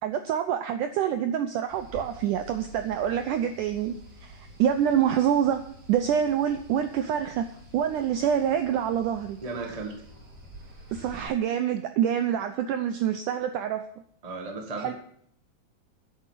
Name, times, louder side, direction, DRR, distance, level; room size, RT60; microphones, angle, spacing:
voice 1, 0.0-4.0 4.2-5.6 5.9-9.4 10.9-13.9 14.8-14.9, right 9 dB, 80° right, 8 dB, 1.8 m, -26 dB
sound 1, 1.7-11.3, right 1 dB, 40° right, 4.8 m, -48 dB
voice 2, 9.4-10.0 14.2-14.9, right 3 dB, 25° right, 2 dB, 0.8 m, -35 dB
10.5 x 8.5 x 7.5 m, 0.66 s
omnidirectional pair, 4.3 m